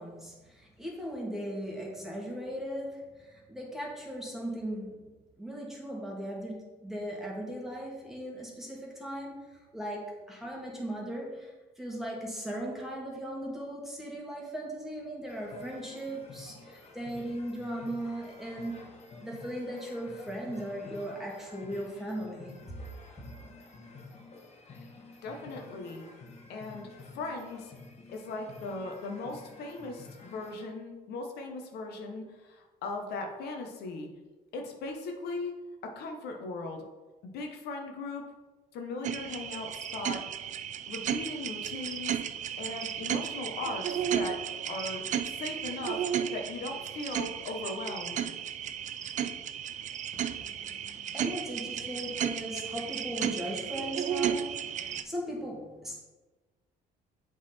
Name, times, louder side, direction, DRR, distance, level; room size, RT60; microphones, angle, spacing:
voice 1, 0.0-5.1 5.4-18.8 19.2-22.8 50.1-56.0, equal, ahead, -3 dB, 1.8 m, -38 dB
sound 1, 15.3-30.7, left 3 dB, 40° left, 1.2 m, -50 dB
voice 2, 25.2-26.0 26.5-26.9 27.1-27.7 28.1-34.1 34.5-35.5 35.8-36.8 37.2-38.3 38.7-40.3 40.9-42.2 42.6-48.3, left 3 dB, 75° left, 2 dB, 1.0 m, -38 dB
sound 2, 39.0-55.0, right 9 dB, 45° right, 0.4 m, -34 dB
7.6 x 4.0 x 4.3 m, 1.2 s
cardioid pair, 110°, 17 cm